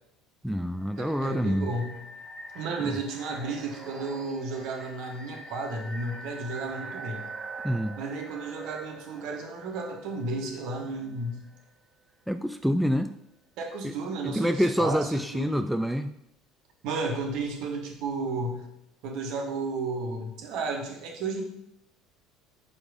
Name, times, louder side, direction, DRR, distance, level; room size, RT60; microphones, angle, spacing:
voice 1, 0.4-1.7 2.8-3.0 7.6-8.0 12.3-13.1 13.8-13.9 14.2-16.1, equal, ahead, 8 dB, 0.3 m, -27 dB
sound 1, 0.8-11.6, right 3 dB, 25° right, 1.1 m, -44 dB
voice 2, 1.0-2.0 2.5-7.2 8.0-11.4 13.6-15.6 16.8-18.7 19.0-21.4, right 3 dB, 60° right, 2 dB, 1.3 m, -33 dB
5.3 x 4.9 x 5.0 m, 0.79 s
figure-of-eight pair, 60°, 0 cm